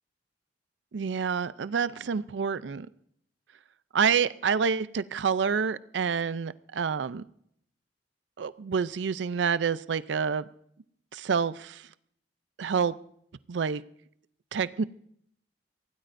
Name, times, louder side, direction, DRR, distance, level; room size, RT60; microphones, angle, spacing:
voice 1, 0.9-2.9 3.9-7.2 8.4-10.4 11.1-11.8 12.6-12.9 13.5-13.8 14.5-14.8, right 6 dB, 90° right, 16 dB, 0.5 m, -28 dB
23.5 x 16.5 x 2.6 m, 0.69 s
head